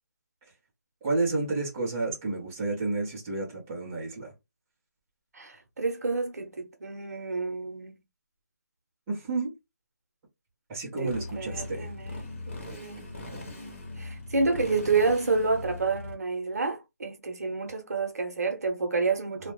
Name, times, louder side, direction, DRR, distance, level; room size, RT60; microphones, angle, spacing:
voice 1, 1.0-4.3 9.1-9.5 10.7-11.9 19.4-19.5, right 3 dB, 10° right, 0.6 m, -30 dB
voice 2, 5.3-7.9 11.0-12.3 12.7-19.5, right 4 dB, 60° right, 0.8 m, -29 dB
Motorcycle, 11.1-16.2, left 2 dB, 45° left, 0.9 m, -40 dB
2.3 x 2.1 x 3.0 m
hypercardioid pair, 170°, 10 cm